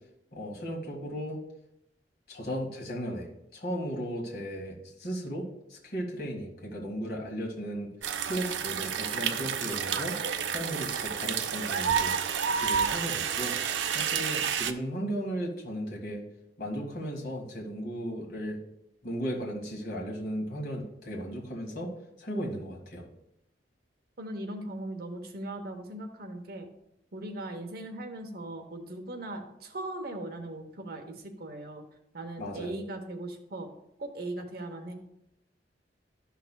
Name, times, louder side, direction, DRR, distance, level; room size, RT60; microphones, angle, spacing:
voice 1, 0.3-1.4 2.3-7.9 8.2-10.2 10.5-12.2 12.5-13.5 13.9-16.2 16.6-18.6 19.0-23.1 32.4-32.8, equal, 55° left, -1 dB, 1.8 m, -36 dB
sound 1, 8.0-14.7, right 7 dB, 90° right, 0.5 m, -30 dB
voice 2, 24.2-26.7 27.1-31.8 32.1-33.7 34.0-34.9, right 1 dB, 60° right, 5 dB, 0.9 m, -39 dB
13.0 x 5.8 x 2.3 m, 0.82 s
head